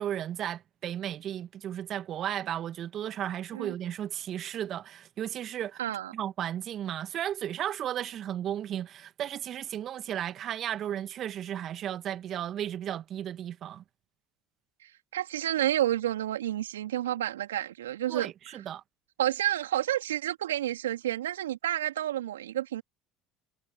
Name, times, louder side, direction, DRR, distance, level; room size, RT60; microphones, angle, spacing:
voice 1, 0.0-5.8 6.1-13.8 18.1-18.8, right 10 dB, 50° right, 1.5 m, -34 dB
voice 2, 5.8-6.1 15.1-18.3 19.2-22.8, right 12 dB, 85° right, 3.2 m, -30 dB
hypercardioid pair, 65°, 0 cm